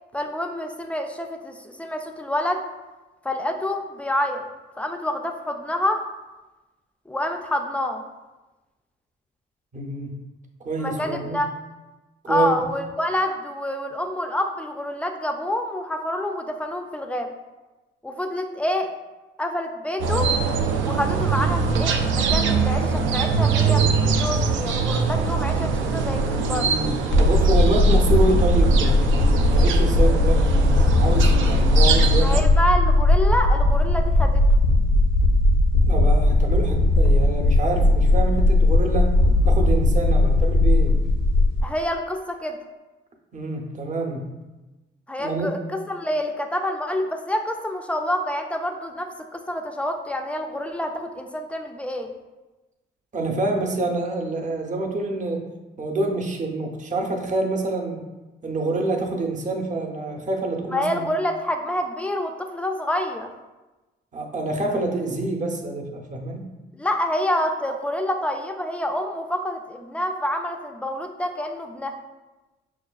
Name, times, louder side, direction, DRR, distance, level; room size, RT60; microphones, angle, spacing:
voice 1, 0.1-2.6 3.2-4.4 4.8-6.0 7.1-8.0 10.8-11.5 12.3-17.3 18.0-18.9 19.4-20.3 20.8-26.7 32.2-34.4 41.6-42.6 45.1-52.1 60.7-63.3 66.7-71.9, left 1 dB, 5° left, 4 dB, 0.4 m, -27 dB
voice 2, 9.7-10.2 10.6-11.4 12.2-12.5 25.8-26.0 26.6-32.5 35.9-39.1 39.5-41.0 43.3-44.2 45.2-45.5 53.1-55.5 55.8-58.0 58.4-61.1 64.1-66.5, right 2 dB, 40° right, 1 dB, 0.7 m, -27 dB
sound 1, 20.0-32.4, right 5 dB, 80° right, 0.4 m, -23 dB
sound 2, 27.1-41.6, left 2 dB, 75° left, 0.6 m, -18 dB
5.9 x 2.2 x 2.3 m, 1.1 s
cardioid pair, 90°, 20 cm